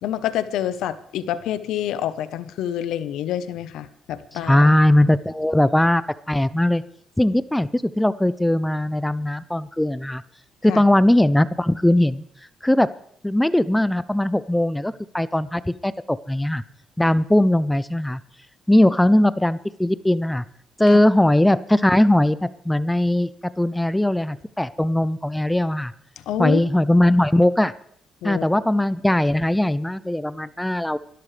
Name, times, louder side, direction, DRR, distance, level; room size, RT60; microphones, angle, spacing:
voice 1, 0.0-4.6 10.7-10.8 20.9-21.0 26.3-26.6 28.2-28.4, left 11 dB, 85° left, 13 dB, 0.9 m, -27 dB
voice 2, 4.4-6.8 7.2-10.2 10.6-12.2 12.6-12.9 13.2-16.6 17.0-18.2 18.7-20.4 20.8-23.3 23.6-25.9 26.4-27.7 28.2-31.0, left 1 dB, 5° left, 16 dB, 0.5 m, -19 dB
25.0 x 12.5 x 3.3 m, 0.66 s
cardioid pair, 90°, 0 cm